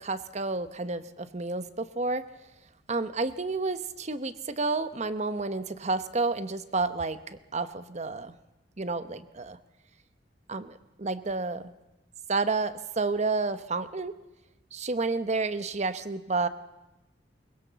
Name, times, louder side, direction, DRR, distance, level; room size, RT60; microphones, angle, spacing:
voice 1, 0.0-2.2 2.9-8.3 8.8-9.6 10.5-11.7 12.3-14.1 14.7-16.5, right 3 dB, 40° right, 12 dB, 1.0 m, -30 dB
23.0 x 20.5 x 7.0 m, 1.0 s
head